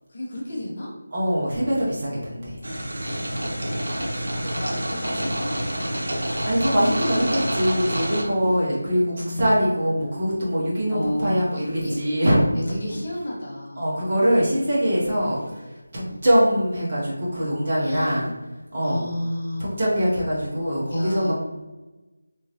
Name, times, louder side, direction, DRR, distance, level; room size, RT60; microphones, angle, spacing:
voice 1, 0.1-0.9 3.6-3.8 4.4-6.0 8.3-9.5 10.9-11.9 12.5-13.9 15.9-16.2 17.8-18.1 18.8-19.6 20.9-21.3, left 1 dB, 35° left, -3 dB, 0.7 m, -32 dB
voice 2, 1.1-2.6 6.4-12.4 13.8-15.6 15.9-18.3 18.7-19.0 19.6-21.3, equal, 25° right, -6 dB, 0.7 m, -23 dB
sound 1, 2.6-8.2, equal, 70° right, 0.8 m, -27 dB
sound 2, 3.0-3.6 5.4-6.2 7.7-9.0 11.5-13.5 15.2-15.7 18.0-18.6 20.4-20.5, right 1 dB, 40° right, 1.4 m, -42 dB
3.0 x 2.5 x 2.7 m, 1.1 s
figure-of-eight pair, 180°, 0 cm